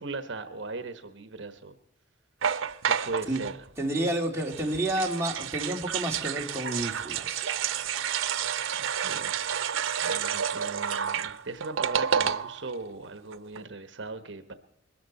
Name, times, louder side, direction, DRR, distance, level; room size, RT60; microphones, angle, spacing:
voice 1, 0.0-1.8 2.8-3.7 8.8-9.5 10.0-14.5, right 3 dB, 65° right, 9 dB, 1.2 m, -38 dB
sound 1, 2.4-3.6 4.4-12.7 13.0-13.1 13.3-13.6, right 8 dB, 85° right, 0.7 m, -30 dB
voice 2, 3.8-7.5, right 1 dB, 15° right, -2 dB, 2.6 m, -30 dB
22.0 x 13.5 x 4.2 m, 0.74 s
head